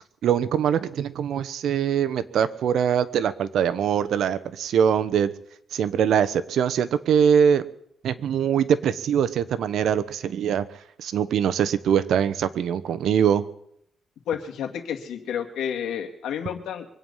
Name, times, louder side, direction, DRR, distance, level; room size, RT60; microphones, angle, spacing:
voice 1, 0.2-5.3 5.7-7.6 8.0-10.6 11.0-13.4, right 8 dB, 75° right, 13 dB, 1.0 m, -22 dB
voice 2, 14.3-16.9, left 8 dB, 85° left, 4 dB, 2.3 m, -30 dB
24.0 x 9.1 x 5.6 m, 0.72 s
cardioid pair, 95°, 0 cm